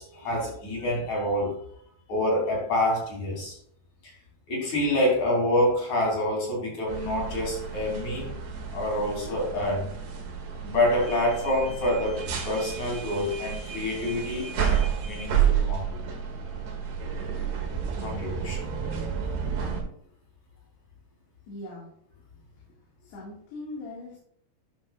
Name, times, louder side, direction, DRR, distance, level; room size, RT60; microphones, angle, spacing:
voice 1, 0.0-1.5 2.1-3.5 4.0-4.1 4.5-8.3 8.7-9.9 10.6-16.0 18.0-18.6, left 1 dB, 45° left, -3 dB, 4.2 m, -27 dB
sound 1, 6.9-19.8, right 7 dB, 60° right, 2.5 m, -30 dB
voice 2, 21.5-21.9 23.0-24.2, left 2 dB, 80° left, -5 dB, 4.0 m, -40 dB
12.0 x 6.4 x 2.4 m, 0.65 s
omnidirectional pair, 4.7 m